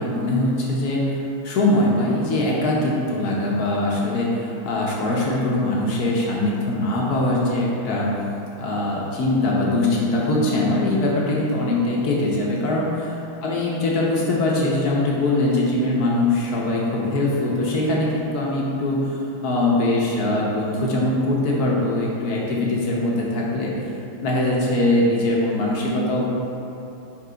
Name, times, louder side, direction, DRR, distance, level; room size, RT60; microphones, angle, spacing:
voice 1, 0.0-8.2 8.6-13.0 13.4-23.7 24.2-26.3, left 2 dB, 60° left, -4 dB, 1.1 m, -22 dB
5.7 x 3.5 x 5.0 m, 2.9 s
omnidirectional pair, 2.3 m